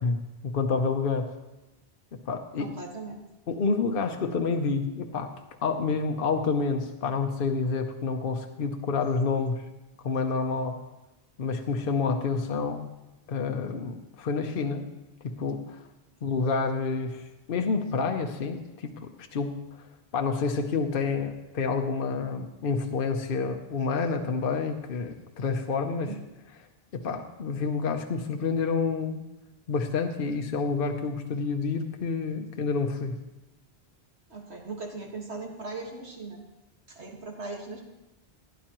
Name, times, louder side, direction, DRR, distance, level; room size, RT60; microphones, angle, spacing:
voice 1, 0.0-1.3 2.3-2.7 3.5-5.3 5.6-9.6 10.0-10.8 11.4-12.8 13.3-14.9 15.2-15.8 16.2-19.0 19.3-19.6 20.1-26.1 26.9-29.2 29.7-33.2, left 4 dB, 60° left, 4 dB, 0.9 m, -28 dB
voice 2, 2.6-3.2 26.0-26.3 34.3-36.4 36.9-37.8, right 3 dB, 80° right, 1 dB, 2.0 m, -39 dB
16.0 x 10.5 x 3.0 m, 1.0 s
omnidirectional pair, 1.1 m